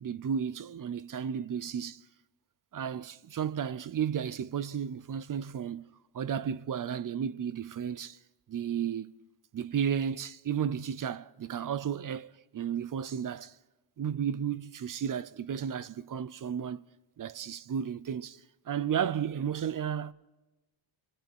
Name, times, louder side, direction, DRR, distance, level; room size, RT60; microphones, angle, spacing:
voice 1, 0.0-2.0 2.7-5.9 6.1-8.2 8.5-9.1 9.5-13.6 14.0-16.8 17.2-20.1, right 8 dB, 40° right, 0.6 m, -33 dB
28.5 x 22.0 x 4.5 m
wide cardioid pair, 150°, 49 cm